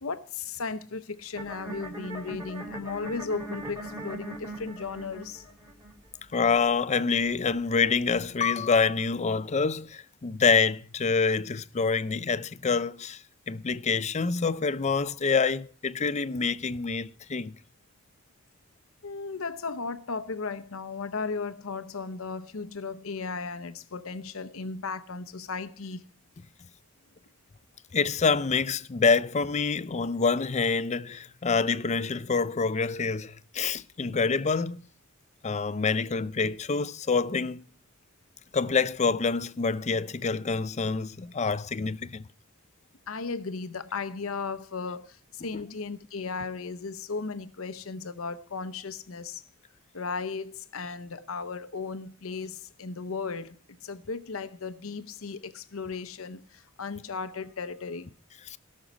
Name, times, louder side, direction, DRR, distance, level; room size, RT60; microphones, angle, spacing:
voice 1, 0.0-5.4 19.0-26.0 43.1-49.4 49.9-58.1, left 4 dB, 80° left, 0.8 m, -36 dB
sound 1, 1.3-8.3, right 1 dB, 15° right, 3.4 m, -41 dB
voice 2, 6.3-13.2 13.5-17.5 27.9-34.9 35.4-37.6 38.5-42.2 58.5-58.6, left 5 dB, 35° left, 0.5 m, -26 dB
17.0 x 6.5 x 6.0 m
head